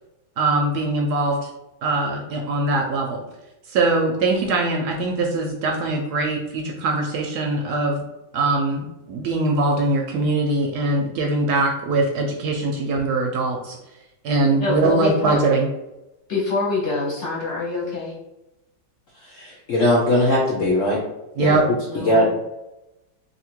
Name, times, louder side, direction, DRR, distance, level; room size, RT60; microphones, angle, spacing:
voice 1, 0.4-1.5 1.8-3.2 3.7-8.0 8.3-13.8 14.2-15.7 21.3-21.6, right 2 dB, 70° right, 1 dB, 1.0 m, -22 dB
voice 2, 14.6-15.4 16.3-18.1 21.9-22.4, left 3 dB, 50° left, -5 dB, 1.0 m, -25 dB
voice 3, 19.3-21.0 21.4-21.6 21.9-22.3, left 1 dB, 65° left, -3 dB, 0.8 m, -19 dB
2.8 x 2.7 x 4.3 m, 0.94 s
omnidirectional pair, 2.0 m